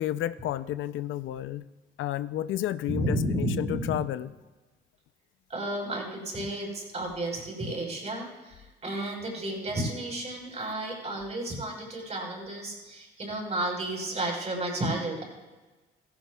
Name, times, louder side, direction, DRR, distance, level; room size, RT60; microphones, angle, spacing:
voice 1, 0.0-1.6 2.0-4.3, left 12 dB, 75° left, 13 dB, 0.5 m, -31 dB
voice 2, 2.9-4.0 5.5-15.2, right 1 dB, 35° right, 1 dB, 4.4 m, -32 dB
16.0 x 15.0 x 2.3 m, 1.2 s
cardioid pair, 90°, 20 cm